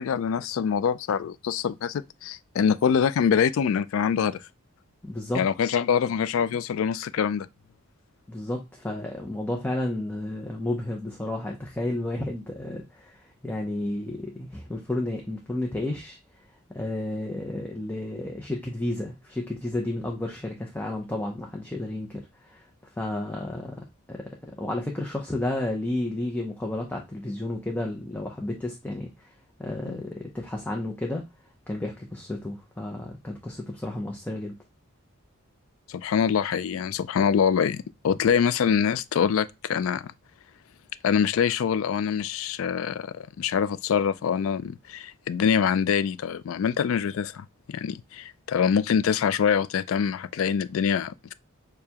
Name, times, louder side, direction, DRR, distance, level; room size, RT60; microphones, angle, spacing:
voice 1, 0.0-4.4 5.3-7.5 29.9-30.0 35.9-40.0 41.0-51.3, left 7 dB, 70° left, 0.3 m, -25 dB
voice 2, 5.0-5.4 8.3-16.2 16.7-22.7 23.0-23.7 24.1-24.2 24.6-29.3 29.6-31.2 31.7-34.6, left 1 dB, 10° left, 0.5 m, -32 dB
6.6 x 2.2 x 2.8 m
head